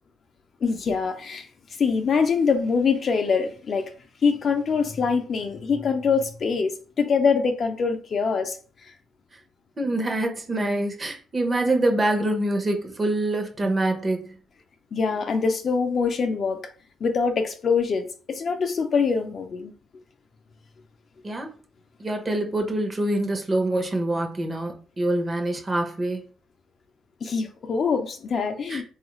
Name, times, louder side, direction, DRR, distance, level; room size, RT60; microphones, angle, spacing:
voice 1, 0.6-1.5 1.8-3.9 4.2-8.6 14.9-16.6 17.0-19.7 27.2-28.8, left 5 dB, 45° left, 0.4 m, -24 dB
voice 2, 9.8-14.4 21.2-21.5 22.0-26.2 28.7-28.8, right 1 dB, 25° right, 0.7 m, -25 dB
3.6 x 2.4 x 3.0 m
cardioid pair, 110°, 0 cm